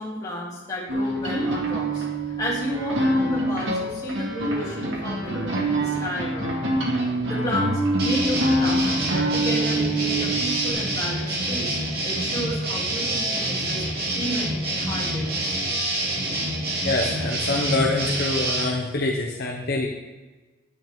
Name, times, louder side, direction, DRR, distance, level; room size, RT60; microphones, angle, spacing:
voice 1, 0.0-2.1 2.4-6.5 7.3-8.9 9.1-11.8 12.0-13.8 14.1-15.6, equal, 20° left, -7 dB, 3.0 m, -32 dB
sound 1, 0.9-10.7, right 1 dB, 75° right, 2.0 m, -25 dB
sound 2, 8.0-18.7, right 1 dB, 50° right, 2.7 m, -27 dB
voice 2, 16.8-19.9, left 2 dB, 50° left, 0 dB, 0.9 m, -25 dB
9.7 x 9.6 x 3.8 m, 1.2 s
head